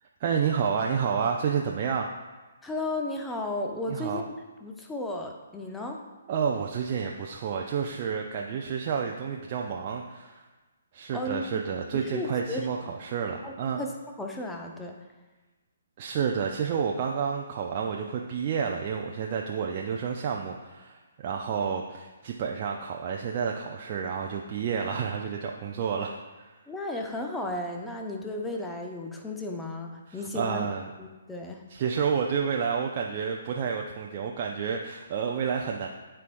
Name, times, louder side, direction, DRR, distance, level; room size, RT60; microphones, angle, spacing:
voice 1, 0.2-2.1 3.9-4.2 6.3-10.4 10.9-13.8 16.0-26.5 30.1-30.9 31.7-35.9, right 6 dB, 35° right, 0 dB, 0.5 m, -30 dB
voice 2, 2.6-4.3 4.6-6.0 11.1-11.6 11.9-12.7 13.4-13.5 13.8-15.0 26.7-30.7 31.0-31.6, left 2 dB, 5° left, 1 dB, 0.8 m, -34 dB
12.5 x 4.5 x 2.6 m, 1.2 s
figure-of-eight pair, 130°, 0 cm